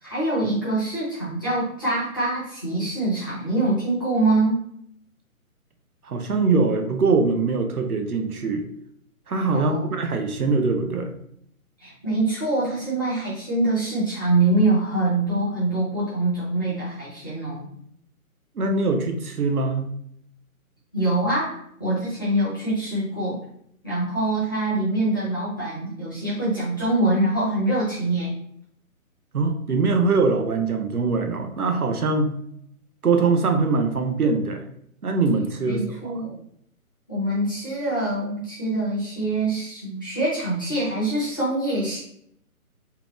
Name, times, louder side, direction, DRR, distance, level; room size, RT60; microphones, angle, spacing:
voice 1, 0.0-4.6 9.5-9.8 11.8-17.7 20.9-23.4 23.8-28.3 35.6-36.4 37.1-42.0, right 2 dB, 15° left, -11 dB, 0.5 m, -24 dB
voice 2, 6.0-8.7 9.3-11.1 18.6-19.9 29.3-32.3 33.0-34.7 35.0-36.2, right 4 dB, 85° right, 5 dB, 0.6 m, -22 dB
2.8 x 2.2 x 3.0 m, 0.71 s
figure-of-eight pair, 140°, 43 cm